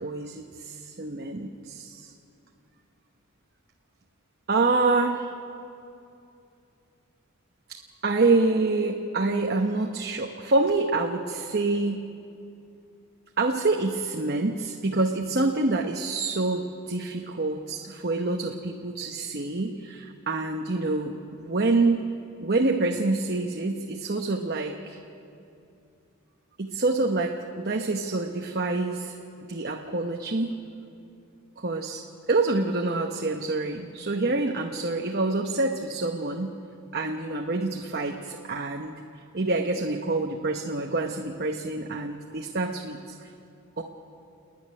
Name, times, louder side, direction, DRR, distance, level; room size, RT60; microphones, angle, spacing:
voice 1, 0.0-2.1 4.5-5.3 7.7-7.8 8.0-12.0 13.4-22.0 22.4-25.0 26.6-29.1 29.5-30.5 31.6-32.0 32.3-36.6 36.9-39.0 39.3-43.0 43.8-43.9, right 3 dB, 45° right, 2 dB, 0.9 m, -26 dB
29.0 x 10.5 x 9.9 m, 2.7 s
head